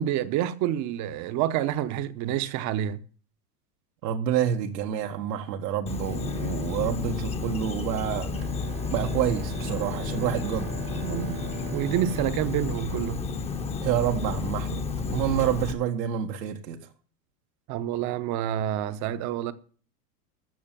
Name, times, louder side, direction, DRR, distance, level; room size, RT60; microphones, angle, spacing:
voice 1, 0.0-3.0 10.9-11.4 11.7-13.2 17.7-19.5, right 11 dB, 35° right, 1.0 m, -28 dB
voice 2, 4.0-8.3 8.9-10.7 13.8-14.8 15.1-16.8, right 10 dB, 85° right, 1.7 m, -28 dB
Insect, 5.9-15.7, left 4 dB, 15° left, 1.0 m, -31 dB
Bowed string instrument, 8.3-13.8, right 9 dB, 55° right, 1.6 m, -43 dB
14.0 x 6.6 x 7.4 m
supercardioid pair, 140°, 48 cm